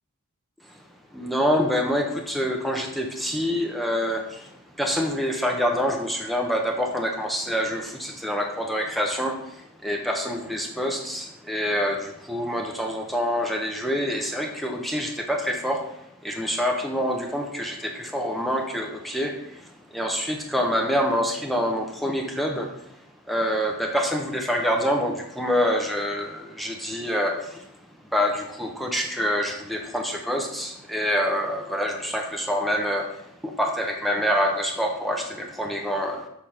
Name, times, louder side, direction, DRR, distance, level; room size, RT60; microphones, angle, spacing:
voice 1, 1.1-27.9 28.1-36.3, equal, ahead, 1 dB, 0.8 m, -26 dB
6.8 x 4.9 x 5.7 m, 0.78 s
head